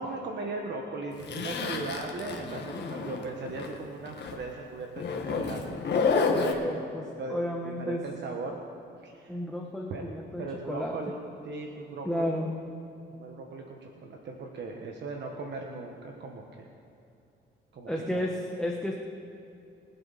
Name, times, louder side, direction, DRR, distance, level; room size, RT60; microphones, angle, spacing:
voice 1, 0.0-5.8 6.1-6.9 7.2-8.6 9.0-9.4 9.9-11.2 11.4-12.3 13.1-16.7 17.7-18.3, right 3 dB, 60° right, 1 dB, 1.4 m, -38 dB
Zipper (clothing), 1.2-3.8 4.0-4.3 5.0-6.5, left 4 dB, 60° left, 1.6 m, -29 dB
voice 2, 6.6-8.0 9.3-10.9 12.0-12.5 17.8-18.9, left 1 dB, 5° left, -1 dB, 1.3 m, -32 dB
23.0 x 8.2 x 4.2 m, 2.7 s
cardioid pair, 90°, 20 cm